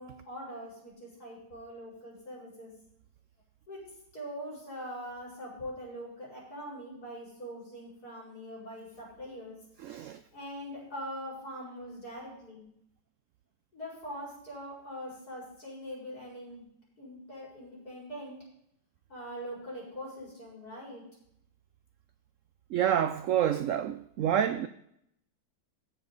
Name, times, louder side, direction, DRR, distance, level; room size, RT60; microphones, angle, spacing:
voice 1, 0.0-2.7 3.7-3.9 4.1-9.6 10.3-12.6 13.7-16.6 17.0-18.4 19.1-21.0, equal, 60° left, 5.6 m, -42 dB
voice 2, 9.8-10.2 22.7-24.7, right 10 dB, 75° right, 0.7 m, -28 dB
16.5 x 6.8 x 4.0 m
omnidirectional pair, 1.8 m